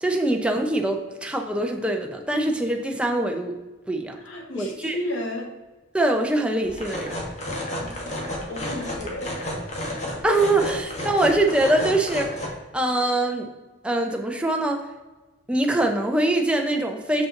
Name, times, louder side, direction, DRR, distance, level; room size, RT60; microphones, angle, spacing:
voice 1, 0.0-3.6 3.9-4.2 4.6-5.0 5.9-7.2 10.2-12.2 12.7-13.5 13.8-14.8 15.5-17.3, right 1 dB, 5° right, 2 dB, 0.6 m, -23 dB
voice 2, 4.2-5.5 7.8-9.9 11.3-11.4 11.7-11.9, left 1 dB, 70° left, -1 dB, 1.8 m, -34 dB
sound 1, 6.6-12.5, left 1 dB, 35° left, 1.4 m, -32 dB
6.6 x 5.4 x 3.8 m, 1.2 s
head